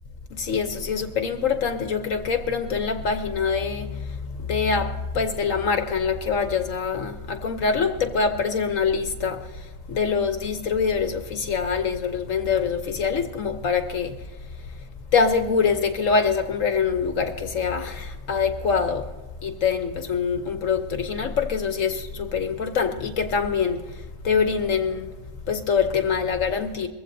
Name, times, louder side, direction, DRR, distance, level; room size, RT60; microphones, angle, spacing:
voice 1, 0.3-14.1 15.1-19.1 19.4-25.1 25.5-26.9, left 5 dB, 70° left, 1.3 m, -24 dB
22.0 x 15.5 x 2.7 m
omnidirectional pair, 1.5 m